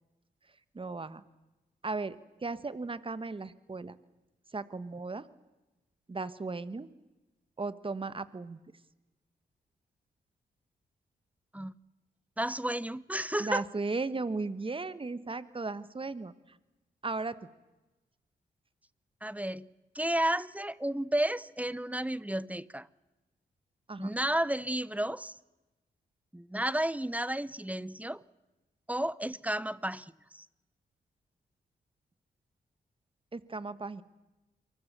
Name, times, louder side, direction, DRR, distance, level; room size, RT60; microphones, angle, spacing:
voice 1, 0.7-1.2 1.8-3.9 4.5-5.3 6.1-6.9 7.6-8.6 13.4-16.6 17.0-17.3 23.9-24.1 33.3-34.0, right 3 dB, 30° right, 1.6 m, -36 dB
voice 2, 12.4-13.6 19.2-19.7 19.9-22.9 24.0-25.3 26.3-28.2 28.9-30.4, right 1 dB, 10° right, 0.9 m, -32 dB
29.0 x 24.0 x 7.0 m
cardioid pair, 60°, 18 cm